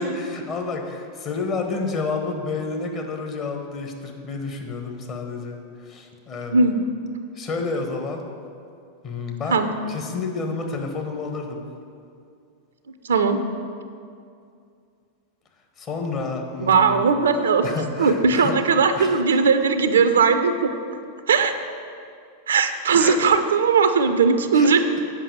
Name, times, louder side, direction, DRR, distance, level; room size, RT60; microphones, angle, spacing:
voice 1, 0.0-6.6 7.3-8.2 9.0-9.6 9.9-11.6 15.8-17.0 17.6-18.7 19.0-19.4 22.9-23.2 24.5-24.7, left 4 dB, 30° left, 2 dB, 1.2 m, -30 dB
voice 2, 13.1-13.4 16.6-17.7 18.0-20.7 21.3-21.5 22.5-24.8, right 5 dB, 65° right, 9 dB, 0.5 m, -18 dB
7.4 x 5.5 x 7.2 m, 2.4 s
figure-of-eight pair, 90°, 0 cm